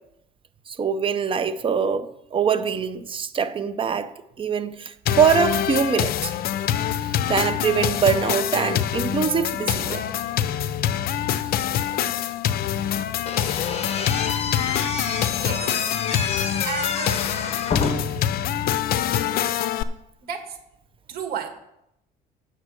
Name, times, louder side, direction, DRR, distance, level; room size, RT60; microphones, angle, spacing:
voice 1, 0.7-6.3 7.3-10.0, right 7 dB, 30° right, 0.6 m, -23 dB
sound 1, 5.1-19.8, left 10 dB, 65° left, 0.6 m, -25 dB
Slam / Squeak, 13.3-18.2, left 5 dB, 40° left, 1.2 m, -28 dB
voice 2, 15.1-15.8 16.3-17.3 18.8-18.9 20.2-20.6 21.1-21.5, right 7 dB, 65° right, 1.6 m, -34 dB
8.8 x 6.6 x 6.3 m
cardioid pair, 110°, 17 cm